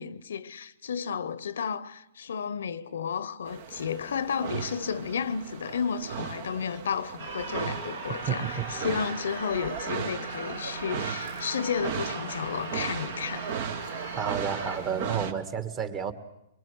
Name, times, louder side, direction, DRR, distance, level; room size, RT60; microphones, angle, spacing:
voice 1, 0.0-13.5, left 7 dB, 75° left, 0.9 m, -32 dB
sound 1, 3.5-15.3, right 7 dB, 55° right, 1.4 m, -37 dB
sound 2, 7.2-14.8, right 3 dB, 85° right, 5.1 m, -39 dB
voice 2, 14.2-16.1, right 7 dB, 30° right, 1.9 m, -31 dB
23.5 x 23.0 x 7.9 m
hypercardioid pair, 130°, 0 cm